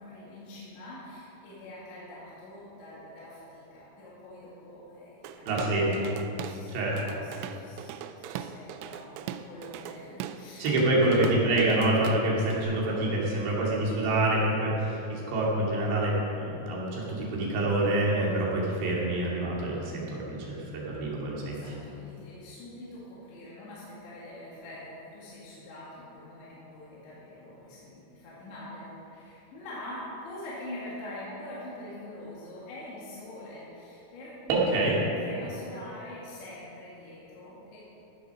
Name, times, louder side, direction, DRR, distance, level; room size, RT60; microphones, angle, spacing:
voice 1, 0.0-6.1 6.4-10.6 11.0-11.4 21.5-34.7 35.2-37.8, left 1 dB, 70° left, -8 dB, 4.3 m, -44 dB
Drum kit / Drum, 5.2-6.6 7.0-12.6, right 9 dB, 85° right, 2.9 m, -40 dB
voice 2, 5.5-6.1 6.7-7.0 10.6-21.6 34.5-35.0, right 1 dB, 65° right, -4 dB, 4.3 m, -26 dB
15.5 x 7.8 x 6.2 m, 3.0 s
omnidirectional pair, 5.7 m